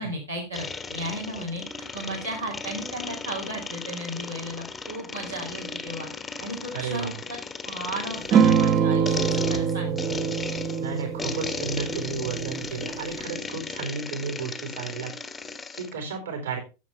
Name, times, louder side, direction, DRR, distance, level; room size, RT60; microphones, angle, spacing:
voice 1, 0.0-1.6 1.9-6.1 6.4-7.4 7.6-10.3, right 1 dB, 85° right, -4 dB, 2.7 m, -35 dB
sound 1, 0.5-15.9, left 4 dB, 15° left, 1.1 m, -36 dB
voice 2, 6.7-7.1 10.8-15.1 15.7-16.6, right 5 dB, 65° right, 4 dB, 4.1 m, -33 dB
sound 2, 8.3-13.2, right 7 dB, 35° right, 1.1 m, -24 dB
12.5 x 7.3 x 3.4 m, 0.30 s
figure-of-eight pair, 90°, 0 cm